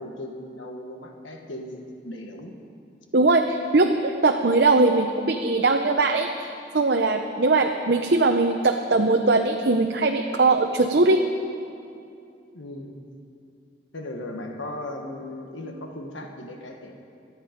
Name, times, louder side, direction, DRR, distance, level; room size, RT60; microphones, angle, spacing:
voice 1, 0.0-2.5 12.5-13.0 13.9-16.9, left 1 dB, 90° left, 3 dB, 1.4 m, -37 dB
voice 2, 3.1-11.2, right 3 dB, 55° right, 3 dB, 0.7 m, -21 dB
25.5 x 8.9 x 5.2 m, 2.5 s
head